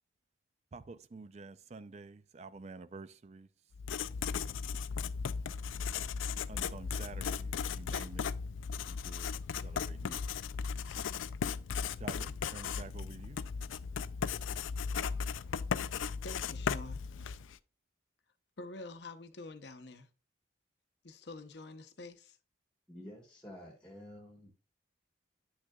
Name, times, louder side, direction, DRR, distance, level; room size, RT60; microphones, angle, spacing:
voice 1, 0.7-3.5 6.5-8.3 8.8-9.3 9.6-10.2 12.0-13.4, right 3 dB, 35° right, 0.4 m, -49 dB
Writing, 3.7-17.6, left 6 dB, 80° left, 0.4 m, -36 dB
voice 2, 16.2-17.0 18.6-20.1 21.0-22.4, left 2 dB, 60° left, 0.7 m, -47 dB
voice 3, 22.9-24.5, left 1 dB, 5° left, 1.3 m, -50 dB
9.6 x 6.3 x 2.3 m
head